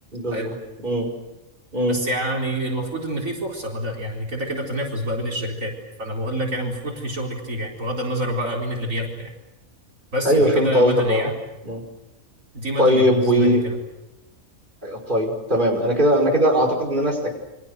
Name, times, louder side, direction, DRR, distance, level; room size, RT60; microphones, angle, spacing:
voice 1, 0.1-0.5 0.8-1.1 1.7-2.0 10.2-11.3 11.6-11.8 12.8-13.6 14.8-17.3, equal, 35° right, 0 dB, 5.4 m, -19 dB
voice 2, 1.9-5.7 6.0-9.3 10.1-11.3 12.5-13.8, equal, 70° right, -1 dB, 4.6 m, -27 dB
29.0 x 25.0 x 6.7 m, 1.0 s
omnidirectional pair, 1.4 m